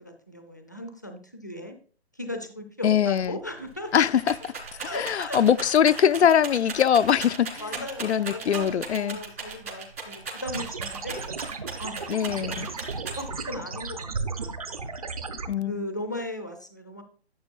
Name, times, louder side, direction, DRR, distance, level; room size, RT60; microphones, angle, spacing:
voice 1, 0.0-1.7 2.1-3.9 4.7-5.7 7.6-11.3 11.8-12.1 12.3-12.7 13.2-15.3 15.6-17.0, left 1 dB, 20° left, 0.5 m, -37 dB
voice 2, 2.8-3.4 3.9-4.5 4.8-7.6 8.0-9.2 12.1-12.7 15.5-15.8, left 9 dB, 90° left, 0.6 m, -22 dB
Rattle, 3.2-3.3 3.6-13.5 14.1-14.8, right 4 dB, 65° right, 3.6 m, -37 dB
Alien sound, 10.5-15.5, right 4 dB, 35° right, 0.7 m, -35 dB
12.0 x 8.3 x 2.4 m
hypercardioid pair, 175°, 32 cm